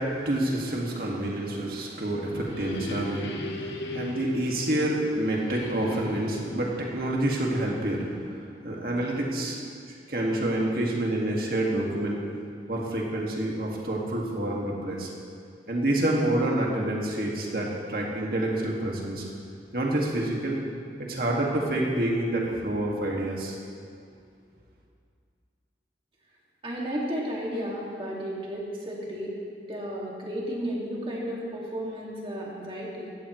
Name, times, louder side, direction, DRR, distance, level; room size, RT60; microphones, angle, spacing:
voice 1, 0.0-9.6 9.9-12.2 12.7-15.1 15.7-19.2 19.7-20.6 21.0-23.6, right 1 dB, 55° right, -2 dB, 2.0 m, -28 dB
sound 1, 1.9-8.4, left 1 dB, 90° left, 1.1 m, -38 dB
voice 2, 26.6-29.4 29.7-33.1, equal, 30° right, -3 dB, 2.2 m, -33 dB
16.0 x 13.5 x 3.2 m, 2.3 s
head